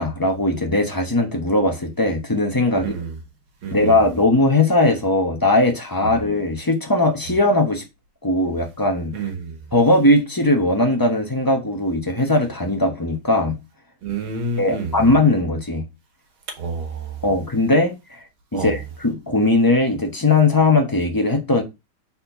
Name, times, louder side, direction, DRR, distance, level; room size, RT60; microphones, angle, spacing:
voice 1, 0.0-2.9 3.7-7.8 8.2-9.3 9.7-13.6 14.6-15.8 17.2-18.2 18.5-21.6, left 2 dB, 20° left, 0.5 m, -19 dB
voice 2, 2.8-3.1 3.6-4.0 6.0-6.1 9.1-9.6 14.0-15.0 16.6-17.2 18.5-18.8, right 4 dB, 85° right, 2.4 m, -29 dB
4.3 x 4.3 x 5.6 m
omnidirectional pair, 2.2 m